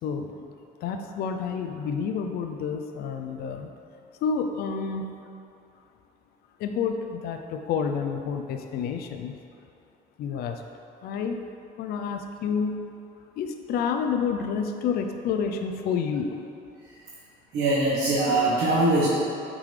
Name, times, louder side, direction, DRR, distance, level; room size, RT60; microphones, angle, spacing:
voice 1, 0.0-0.5 0.8-3.7 4.2-5.2 6.6-9.3 10.2-10.6 11.0-11.4 11.8-12.9 13.4-16.4, left 6 dB, 65° left, 5 dB, 0.4 m, -29 dB
voice 2, 17.5-19.1, right 2 dB, 75° right, -8 dB, 1.1 m, -22 dB
8.5 x 3.8 x 3.2 m, 2.6 s
cardioid pair, 110°, 17 cm